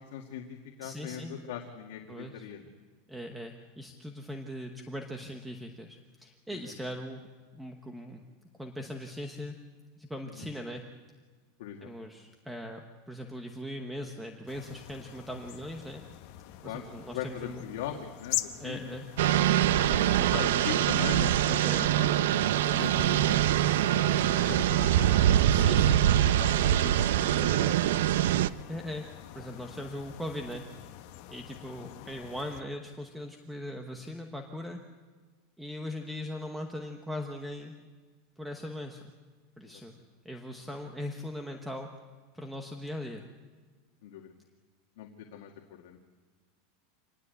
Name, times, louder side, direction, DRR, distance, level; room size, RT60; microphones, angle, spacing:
voice 1, 0.1-2.7 6.5-6.7 10.4-10.5 11.6-11.9 16.6-16.9 17.1-18.9 20.0-22.4 22.7-23.5 24.5-27.9 31.8-32.1 39.6-40.0 44.0-44.3 45.0-46.0, left 9 dB, 60° left, 1 dB, 2.1 m, -41 dB
voice 2, 0.8-1.3 2.1-2.5 3.1-7.3 7.5-8.2 8.6-9.5 10.0-10.8 11.8-16.0 16.6-17.6 18.6-19.1 19.7-20.4 20.8-20.9 21.6-21.9 25.4-26.0 28.7-29.1 29.3-30.6 31.3-34.8 35.6-37.7 38.4-39.0 39.6-39.9 40.2-41.9 42.3-43.2, left 1 dB, 5° right, 4 dB, 1.0 m, -40 dB
sound 1, 14.5-32.6, left 14 dB, 45° left, 1.1 m, -44 dB
sound 2, 19.2-28.5, right 11 dB, 75° right, 0.7 m, -24 dB
26.5 x 20.0 x 8.2 m, 1.4 s
supercardioid pair, 180°, 0 cm